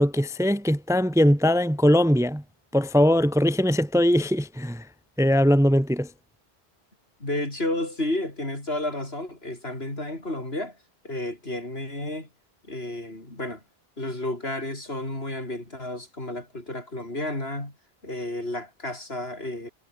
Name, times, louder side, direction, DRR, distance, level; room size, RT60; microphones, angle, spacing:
voice 1, 0.0-2.4 2.7-4.8 5.2-6.1, equal, 5° right, 0.8 m, -21 dB
voice 2, 7.2-10.8 11.0-12.3 12.7-13.6 14.0-17.7 18.0-19.7, left 1 dB, 75° left, 6.6 m, -31 dB
omnidirectional pair, 1.1 m